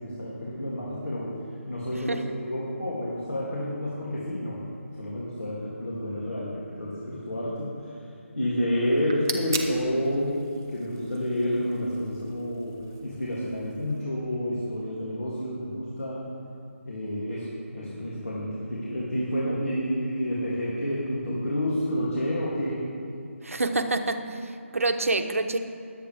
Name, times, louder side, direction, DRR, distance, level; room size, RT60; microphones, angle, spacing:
voice 1, 0.0-1.3 1.7-4.6 5.0-8.0 8.4-10.4 10.7-16.3 16.8-22.8, equal, 70° left, -7 dB, 2.9 m, -29 dB
Soda Opening, 8.8-14.0, right 4 dB, 15° right, 0.4 m, -40 dB
voice 2, 23.4-25.6, right 2 dB, 75° right, 6 dB, 1.0 m, -27 dB
21.0 x 8.3 x 3.6 m, 2.6 s
figure-of-eight pair, 175°, 8 cm